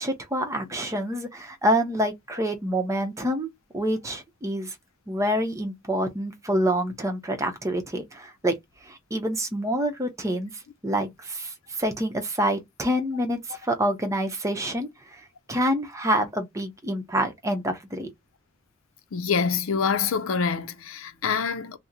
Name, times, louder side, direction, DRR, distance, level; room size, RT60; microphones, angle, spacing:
voice 1, 0.0-4.7 5.1-8.6 8.8-14.9 15.5-18.1, equal, 15° right, 0.7 m, -27 dB
voice 2, 19.1-21.8, left 6 dB, 85° left, 0.5 m, -26 dB
2.8 x 2.1 x 3.7 m
head